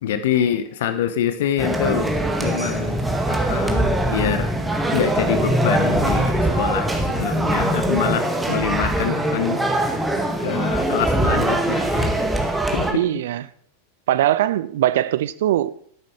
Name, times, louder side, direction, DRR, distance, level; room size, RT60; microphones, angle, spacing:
voice 1, 0.0-3.0 3.3-4.5 4.9-10.0 10.4-12.2 12.7-12.9, left 9 dB, 55° left, 1.1 m, -25 dB
sound 1, 1.6-12.9, right 1 dB, 5° right, 1.8 m, -22 dB
voice 2, 12.9-13.4 14.1-15.7, right 13 dB, 55° right, 0.6 m, -21 dB
12.5 x 10.5 x 4.8 m
figure-of-eight pair, 90°, 0 cm